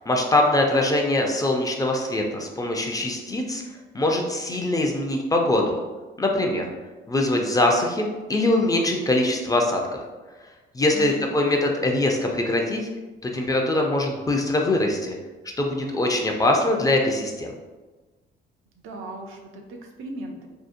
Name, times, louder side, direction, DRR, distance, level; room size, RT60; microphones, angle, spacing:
voice 1, 0.1-3.6 3.9-5.8 6.2-6.7 7.1-10.0 10.7-12.9 13.2-15.2 15.6-17.5, left 2 dB, 20° left, 1 dB, 0.3 m, -22 dB
voice 2, 10.9-11.7 18.8-20.5, right 2 dB, 85° right, 2 dB, 0.5 m, -37 dB
2.6 x 2.1 x 2.5 m, 1.2 s
cardioid pair, 90°, 20 cm